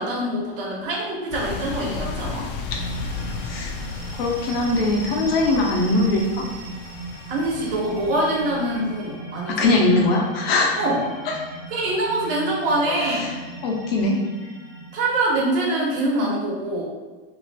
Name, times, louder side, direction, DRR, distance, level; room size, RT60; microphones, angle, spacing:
voice 1, 0.0-2.5 7.3-9.7 10.8-11.0 11.7-13.3 14.9-16.8, right 1 dB, 70° right, -4 dB, 1.1 m, -24 dB
sound 1, 1.3-8.9, left 4 dB, 45° left, 0.5 m, -34 dB
sound 2, 2.7-15.5, right 2 dB, 30° right, 0.6 m, -38 dB
voice 2, 4.1-6.5 9.5-10.9 11.3-11.4 12.8-13.3 13.6-14.2, left 2 dB, 85° left, -1 dB, 1.0 m, -21 dB
2.8 x 2.5 x 4.0 m, 1.3 s
supercardioid pair, 165°, 29 cm